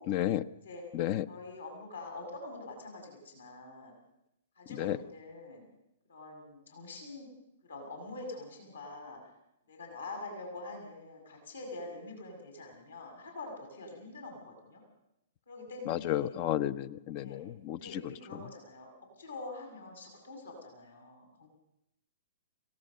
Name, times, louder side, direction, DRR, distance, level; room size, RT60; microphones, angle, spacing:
voice 1, 0.1-0.4 0.9-1.2 4.8-5.0 15.9-17.8, left 12 dB, 40° left, 16 dB, 0.7 m, -31 dB
voice 2, 1.3-3.9 4.6-5.6 6.1-7.3 7.6-9.2 9.7-14.8 15.5-16.3 17.1-17.4 17.7-18.9 19.2-21.5, left 2 dB, 70° left, 2 dB, 6.5 m, -45 dB
28.5 x 17.5 x 6.7 m, 0.85 s
figure-of-eight pair, 110°, 0 cm